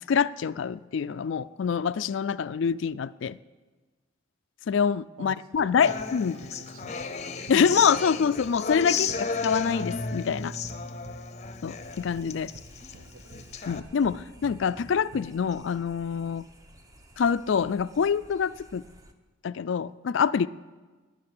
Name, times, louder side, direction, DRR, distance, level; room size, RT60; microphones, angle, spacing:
voice 1, 0.0-3.4 4.7-6.4 7.5-10.5 11.6-12.5 13.7-16.4 17.2-18.8 19.4-20.5, left 6 dB, 70° left, 17 dB, 0.4 m, -26 dB
voice 2, 5.2-6.2 6.5-7.4 7.6-7.8 13.0-13.3, right 3 dB, 85° right, 12 dB, 0.8 m, -48 dB
sound 1, 5.5-15.5, right 1 dB, 55° right, 1.2 m, -51 dB
Human voice / Acoustic guitar, 5.8-13.8, left 5 dB, 35° left, 0.7 m, -33 dB
sound 2, 11.8-19.1, right 1 dB, 15° right, 0.9 m, -54 dB
18.5 x 6.7 x 9.5 m, 1.3 s
head